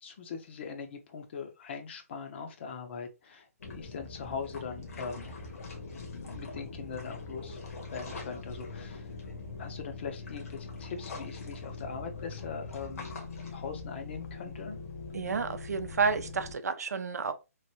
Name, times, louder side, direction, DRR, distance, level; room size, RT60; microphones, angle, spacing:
voice 1, 0.0-5.3 6.1-7.6 7.9-9.1 9.6-13.1 13.5-14.8, left 5 dB, 45° left, 0.7 m, -41 dB
sound 1, 3.6-16.5, left 3 dB, 70° left, 1.2 m, -42 dB
voice 2, 15.1-17.3, right 5 dB, 85° right, 0.5 m, -30 dB
3.2 x 2.6 x 2.7 m
hypercardioid pair, 155°, 8 cm